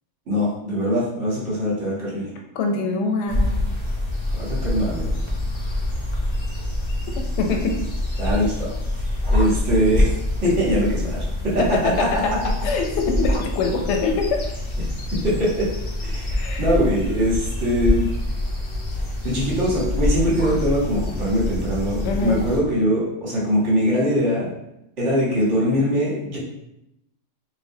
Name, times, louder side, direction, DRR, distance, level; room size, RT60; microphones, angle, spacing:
voice 1, 0.3-2.3 4.3-5.2 8.2-8.7 9.3-10.1 10.6-12.0 15.2-15.7 16.0-18.1 19.2-24.5 25.0-26.4, equal, 65° right, -6 dB, 1.5 m, -22 dB
voice 2, 2.5-3.7 7.4-7.8 10.4-10.6 11.6-14.4 16.3-16.7 22.0-22.4, left 4 dB, 70° left, 3 dB, 0.8 m, -24 dB
sound 1, 3.3-22.6, left 1 dB, 45° left, 0.4 m, -25 dB
3.9 x 2.3 x 2.6 m, 0.83 s
omnidirectional pair, 1.3 m